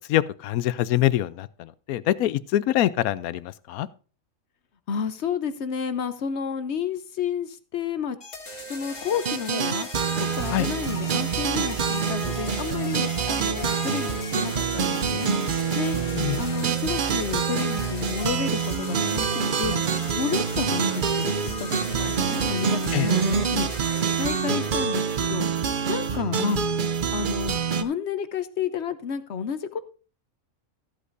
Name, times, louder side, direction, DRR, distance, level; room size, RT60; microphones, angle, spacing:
voice 1, 0.1-3.9 10.5-10.7 16.2-16.4 22.9-23.1, left 13 dB, 90° left, 17 dB, 1.1 m, -24 dB
voice 2, 4.9-8.2 8.7-9.9 10.2-15.3 15.7-16.0 16.4-19.8 20.2-23.7 24.2-25.0 25.3-25.5 25.9-26.6 27.1-29.8, left 7 dB, 60° left, 12 dB, 0.9 m, -31 dB
sound 1, 8.2-26.2, left 2 dB, 40° left, 2.3 m, -38 dB
sound 2, 9.2-27.8, right 6 dB, 50° right, 0.7 m, -26 dB
14.0 x 8.2 x 2.6 m, 0.37 s
omnidirectional pair, 1.5 m